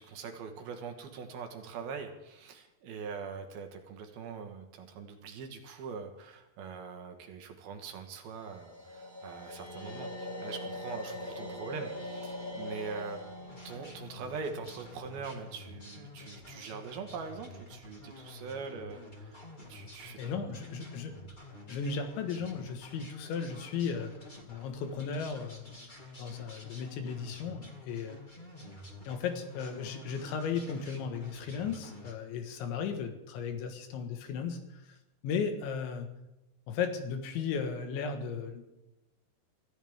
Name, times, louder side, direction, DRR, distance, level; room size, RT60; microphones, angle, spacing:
voice 1, 0.0-19.4 19.7-20.7 28.6-28.7, right 5 dB, 65° right, 5 dB, 2.9 m, -43 dB
sound 1, 8.2-15.4, left 1 dB, 60° left, 0.5 m, -42 dB
sound 2, 13.5-32.1, left 2 dB, 25° left, 1.0 m, -49 dB
voice 2, 20.2-21.2 21.7-24.1 24.5-25.9 26.2-28.2 29.1-34.8 35.2-36.1 36.7-38.8, left 6 dB, 90° left, 6 dB, 3.9 m, -35 dB
24.5 x 14.5 x 3.6 m, 0.94 s
omnidirectional pair, 5.1 m